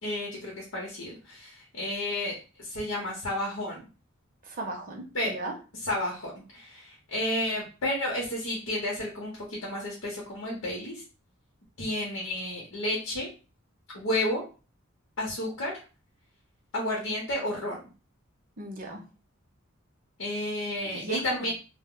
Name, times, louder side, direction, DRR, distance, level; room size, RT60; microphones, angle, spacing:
voice 1, 0.0-3.9 5.1-5.3 5.8-11.0 11.8-13.3 13.9-14.4 15.2-15.8 16.7-17.9 20.2-21.5, left 1 dB, 75° left, -3 dB, 0.8 m, -31 dB
voice 2, 4.4-5.5 18.6-19.0 20.9-21.5, right 2 dB, 40° right, 2 dB, 0.7 m, -36 dB
2.1 x 2.0 x 3.6 m, 0.33 s
head